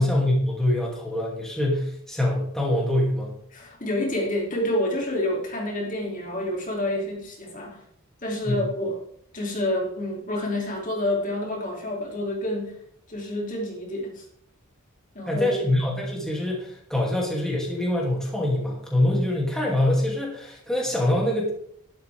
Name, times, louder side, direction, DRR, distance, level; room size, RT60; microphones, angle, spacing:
voice 1, 0.0-3.4 8.5-8.6 15.3-21.5, left 1 dB, 5° left, -3 dB, 2.6 m, -24 dB
voice 2, 3.5-7.8 8.2-9.0 9.3-12.7 13.1-14.2 15.1-15.6, left 1 dB, 35° left, -1 dB, 2.9 m, -28 dB
12.5 x 11.5 x 3.5 m, 0.66 s
head